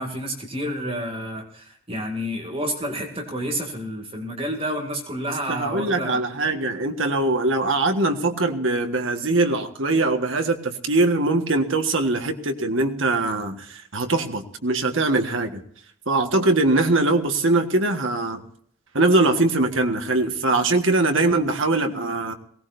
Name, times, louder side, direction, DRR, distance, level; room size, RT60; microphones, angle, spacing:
voice 1, 0.0-6.2, equal, 25° right, 1 dB, 2.3 m, -30 dB
voice 2, 5.5-15.6 16.1-18.4 18.9-22.3, right 2 dB, 60° right, 6 dB, 1.5 m, -22 dB
22.0 x 17.5 x 2.6 m, 0.62 s
head